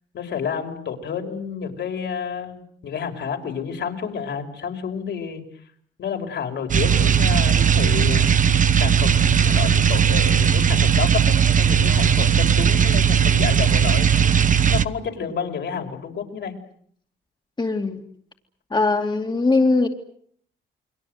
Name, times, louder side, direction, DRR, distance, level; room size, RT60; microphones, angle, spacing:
voice 1, 0.1-5.4 6.0-8.3 8.8-16.5, left 7 dB, 65° left, 4 dB, 5.3 m, -30 dB
sound 1, 6.7-14.8, right 8 dB, 40° right, 1.3 m, -18 dB
voice 2, 17.6-18.0 18.7-19.9, left 3 dB, 20° left, 4 dB, 2.5 m, -20 dB
29.5 x 22.5 x 7.9 m, 0.65 s
cardioid pair, 90°, 20 cm